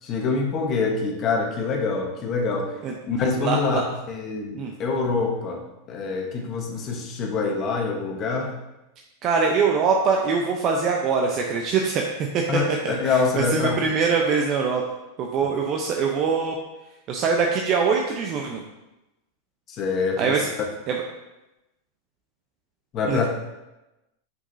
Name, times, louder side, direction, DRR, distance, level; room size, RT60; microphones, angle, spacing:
voice 1, 0.0-2.8 3.1-8.6 12.5-13.8 19.7-20.4 22.9-23.3, left 4 dB, 40° left, 1 dB, 1.1 m, -25 dB
voice 2, 3.4-3.8 4.6-4.7 9.2-14.8 15.2-16.6 17.1-18.6 20.2-20.5 20.9-21.0 23.1-23.3, right 5 dB, 45° right, 1 dB, 0.7 m, -23 dB
6.4 x 6.0 x 2.7 m, 0.97 s
hypercardioid pair, 110°, 0 cm